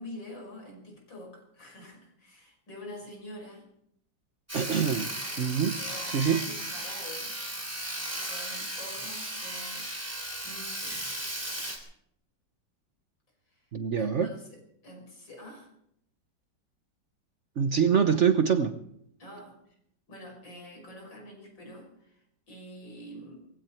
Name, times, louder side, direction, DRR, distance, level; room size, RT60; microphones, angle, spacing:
voice 1, 0.0-3.7 5.8-7.4 8.2-9.9 10.4-11.1 13.5-13.7 14.0-15.7 19.2-19.7 20.1-23.4, left 1 dB, 85° left, 6.6 m, -46 dB
Sawing, 4.5-11.8, right 1 dB, 5° right, 3.1 m, -36 dB
voice 2, 4.5-6.5 13.7-14.3 17.6-18.8, right 7 dB, 50° right, 1.0 m, -25 dB
20.0 x 16.0 x 4.5 m
omnidirectional pair, 2.0 m